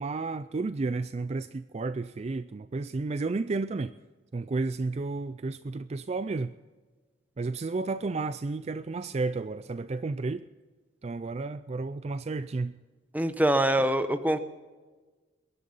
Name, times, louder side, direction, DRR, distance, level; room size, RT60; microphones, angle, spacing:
voice 1, 0.0-3.9 4.3-6.5 7.4-10.4 11.0-12.8, right 3 dB, 35° right, 0.4 m, -32 dB
voice 2, 13.1-14.4, right 1 dB, 10° right, 0.9 m, -24 dB
21.5 x 11.0 x 5.5 m
head